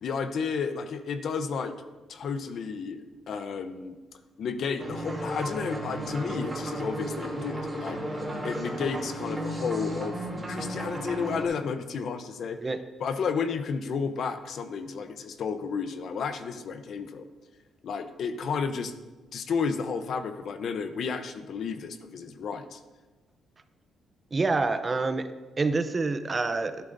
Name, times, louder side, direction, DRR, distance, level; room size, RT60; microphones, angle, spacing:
voice 1, 0.0-1.7 2.1-4.0 4.4-8.0 8.4-12.6 13.0-17.3 17.8-18.9 19.3-22.8, left 5 dB, 65° left, 9 dB, 0.8 m, -32 dB
sound 1, 4.8-11.5, right 1 dB, 10° right, 2.9 m, -34 dB
voice 2, 24.3-25.3 25.6-26.7, right 3 dB, 30° right, 10 dB, 0.7 m, -26 dB
11.5 x 10.5 x 2.7 m, 1.2 s
cardioid pair, 90°, 0 cm